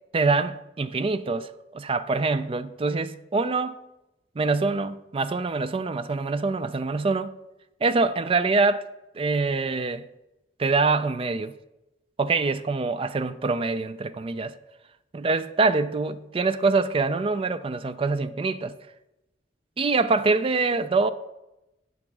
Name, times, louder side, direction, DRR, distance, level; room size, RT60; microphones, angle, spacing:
voice 1, 0.1-3.8 4.4-7.3 7.8-8.8 9.1-10.0 10.6-11.5 12.2-14.5 15.1-18.7 19.8-21.1, right 3 dB, 30° right, 0.4 m, -25 dB
9.7 x 3.6 x 6.0 m
head